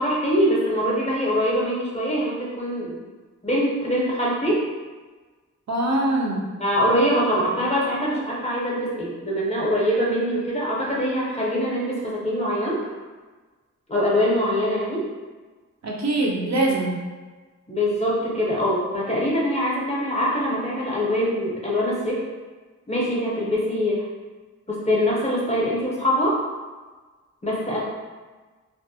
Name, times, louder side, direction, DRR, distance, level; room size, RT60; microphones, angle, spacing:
voice 1, 0.0-3.0 3.4-4.6 6.6-12.8 13.9-15.1 17.7-22.2 22.9-24.0 24.7-26.4 27.4-27.8, equal, 20° left, -5 dB, 0.6 m, -23 dB
voice 2, 5.7-6.5 15.8-17.0, right 2 dB, 60° right, -2 dB, 0.5 m, -23 dB
2.3 x 2.1 x 2.7 m, 1.3 s
wide cardioid pair, 95°, 31 cm